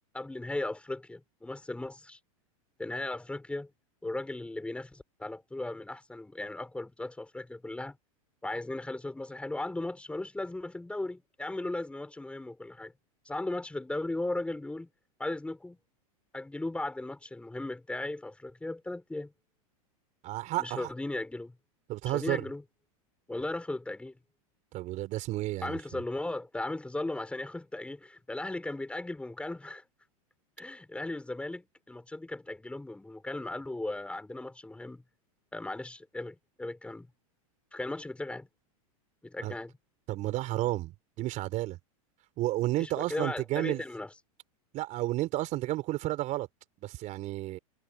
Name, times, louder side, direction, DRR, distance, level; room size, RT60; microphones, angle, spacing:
voice 1, 0.1-2.2 2.8-3.7 4.0-8.0 8.4-12.9 13.3-14.9 15.2-15.8 16.3-19.3 20.6-21.5 22.1-22.6 23.3-24.2 25.6-29.8 30.6-35.0 35.5-37.1 37.7-38.5 39.2-39.7 42.8-44.1, left 2 dB, 5° left, 5.4 m, -37 dB
voice 2, 20.2-20.9 21.9-22.5 24.7-26.0 39.4-39.5 40.1-41.8 42.4-43.8 44.7-46.5 46.8-47.6, right 17 dB, 40° right, 4.0 m, -32 dB
hypercardioid pair, 120°, 19 cm